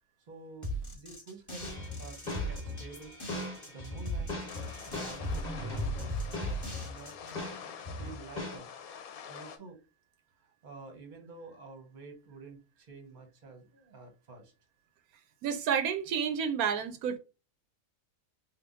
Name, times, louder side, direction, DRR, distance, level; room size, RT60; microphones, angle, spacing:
voice 1, 0.3-3.2 3.7-7.5 8.0-8.7 9.3-9.8 10.4-14.5, right 3 dB, 35° right, 1.1 m, -50 dB
sound 1, 0.6-7.4, equal, 10° left, 1.5 m, -38 dB
sound 2, 1.6-7.0 7.3-8.6, left 2 dB, 30° left, 1.4 m, -40 dB
sound 3, 4.5-9.6, left 7 dB, 85° left, 1.1 m, -47 dB
voice 2, 15.4-17.2, right 7 dB, 85° right, 1.1 m, -30 dB
3.6 x 2.6 x 3.9 m
omnidirectional pair, 1.5 m